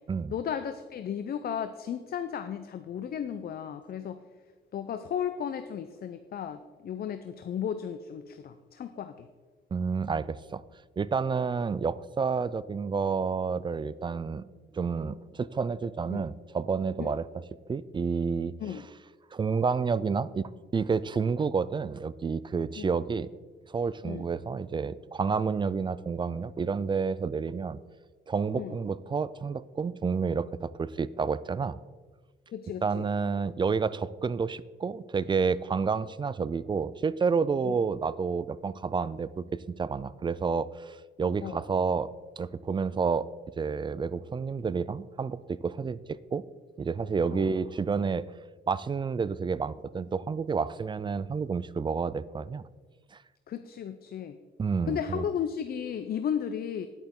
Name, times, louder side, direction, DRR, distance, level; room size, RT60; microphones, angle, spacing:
voice 1, 0.3-4.2 4.7-9.3 16.1-16.2 17.0-17.2 18.6-18.8 22.8-22.9 24.0-24.2 28.6-28.7 32.5-33.1 37.6-37.8 41.4-41.6 47.3-47.5 53.5-54.4 54.9-56.9, left 8 dB, 50° left, 10 dB, 0.5 m, -34 dB
voice 2, 9.7-10.6 11.0-14.4 14.7-17.4 17.7-18.5 19.3-23.3 23.7-27.8 28.3-31.8 32.8-42.1 42.4-43.3 43.6-46.4 46.8-48.3 48.7-52.6 54.6-55.2, right 5 dB, 25° right, 18 dB, 0.3 m, -30 dB
10.5 x 8.9 x 3.7 m, 1.4 s
cardioid pair, 90°, 20 cm